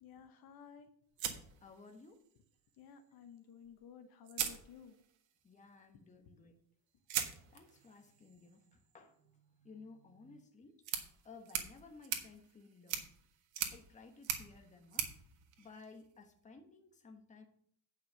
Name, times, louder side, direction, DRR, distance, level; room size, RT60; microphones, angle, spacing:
voice 1, 0.0-0.9 2.8-4.9, left 7 dB, 55° left, 8 dB, 1.0 m, -55 dB
sound 1, 1.2-2.3 3.6-3.7 4.2-5.3 7.1-16.3, right 9 dB, 80° right, 1.6 m, -42 dB
voice 2, 1.6-2.2 5.4-6.5 7.5-9.1 9.6-10.7 11.2-13.0 13.6-15.1 15.6-17.4, left 4 dB, 15° left, 4 dB, 1.2 m, -56 dB
8.9 x 5.6 x 6.3 m, 0.64 s
cardioid pair, 155°, 44 cm